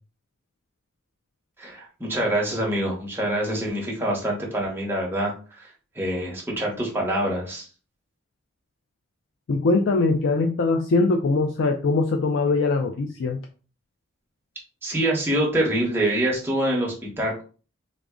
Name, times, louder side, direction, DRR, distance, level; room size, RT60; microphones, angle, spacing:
voice 1, 1.6-5.7 6.0-7.7 14.8-17.4, right 1 dB, 10° right, -3 dB, 0.9 m, -25 dB
voice 2, 9.5-13.4, left 3 dB, 75° left, 3 dB, 0.4 m, -22 dB
3.6 x 2.0 x 3.6 m, 0.37 s
head